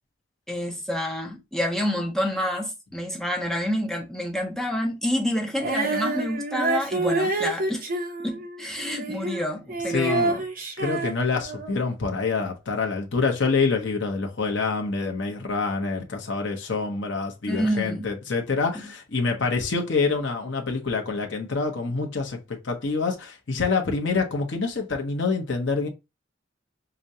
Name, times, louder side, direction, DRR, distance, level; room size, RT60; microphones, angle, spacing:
voice 1, 0.5-7.9 8.2-10.4 17.5-18.1, equal, ahead, 0.6 m, -28 dB
Female singing, 5.6-11.8, right 2 dB, 45° right, 0.7 m, -28 dB
voice 2, 9.9-10.4 10.8-25.9, left 4 dB, 70° left, 0.8 m, -26 dB
4.9 x 2.2 x 2.7 m
head